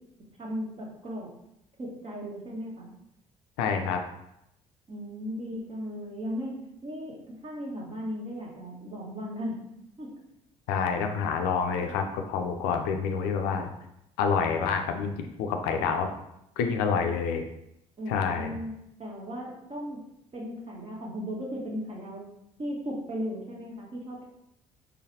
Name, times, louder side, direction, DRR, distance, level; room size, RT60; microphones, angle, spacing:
voice 1, 0.4-1.3 1.8-2.9 4.9-6.5 6.8-9.6 10.0-10.1 18.0-18.7 19.0-20.0 20.3-22.3 22.6-24.3, equal, 40° right, -2 dB, 1.4 m, -36 dB
voice 2, 3.6-4.0 10.7-13.7 14.2-15.1 15.4-16.1 16.6-17.4 18.1-18.6, left 6 dB, 80° left, 5 dB, 0.5 m, -27 dB
3.9 x 3.2 x 2.7 m, 0.81 s
hypercardioid pair, 60°, 16 cm